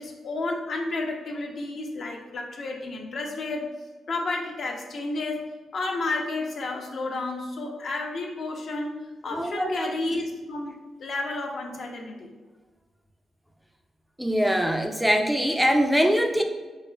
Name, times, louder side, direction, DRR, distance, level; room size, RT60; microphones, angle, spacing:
voice 1, 0.0-3.7 4.1-5.4 5.7-10.7 11.0-12.3, left 2 dB, 65° left, 1 dB, 0.7 m, -31 dB
voice 2, 9.3-10.0 14.2-16.4, equal, 5° right, 4 dB, 0.4 m, -23 dB
4.7 x 3.9 x 2.3 m, 1.3 s
cardioid pair, 85°, 0 cm